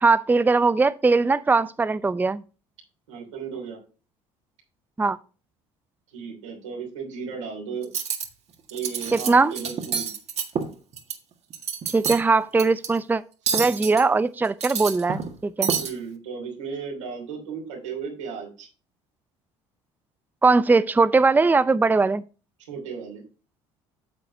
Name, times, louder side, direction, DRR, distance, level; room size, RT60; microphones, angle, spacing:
voice 1, 0.0-2.4 5.0-5.2 9.1-9.5 11.9-13.2 13.5-15.7 20.4-22.2, right 3 dB, 10° right, 0.5 m, -20 dB
voice 2, 3.1-3.8 6.1-7.9 8.7-10.1 15.8-18.7 22.7-23.2, right 6 dB, 90° right, 3.1 m, -35 dB
Cutlery silverware, 7.8-8.3 8.7-9.3 9.6-11.2 11.5-12.2 12.6-12.9 13.5-14.0 14.5-15.3 15.6-15.9, right 6 dB, 45° right, 1.7 m, -28 dB
9.1 x 7.5 x 2.7 m
hypercardioid pair, 65°, 15 cm